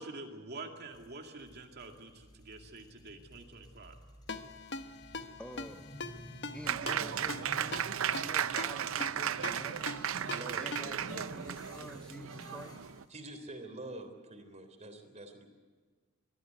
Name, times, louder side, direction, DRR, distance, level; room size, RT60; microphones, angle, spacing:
voice 1, 0.0-3.9, right 3 dB, 55° right, 3 dB, 2.5 m, -47 dB
sound 1, 0.9-13.1, equal, 20° left, 6.8 m, -52 dB
Ringtone, 4.3-11.1, left 3 dB, 60° left, 1.2 m, -43 dB
voice 2, 5.4-5.9 6.5-10.0 10.6-12.8, left 1 dB, 5° left, 8 dB, 0.6 m, -49 dB
Applause, 6.6-13.0, right 9 dB, 80° right, 0.6 m, -35 dB
voice 3, 10.2-10.7 11.0-11.5 13.1-15.5, right 2 dB, 35° right, 6 dB, 3.4 m, -46 dB
24.0 x 14.5 x 9.4 m, 1.5 s
head